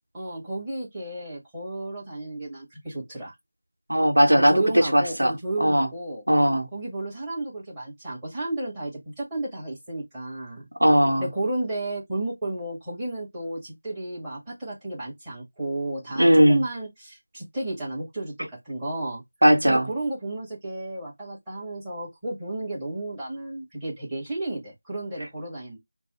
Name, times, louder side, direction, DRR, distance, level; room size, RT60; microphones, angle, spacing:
voice 1, 0.1-3.3 4.4-6.2 6.7-8.9 9.2-10.7 11.2-19.2 19.7-25.8, right 2 dB, 10° right, 1.9 m, -32 dB
voice 2, 3.9-5.9 6.3-6.7 10.8-11.3 16.2-16.6 19.4-19.9, equal, 75° right, 1.1 m, -19 dB
4.0 x 2.3 x 4.3 m
figure-of-eight pair, 170°, 0 cm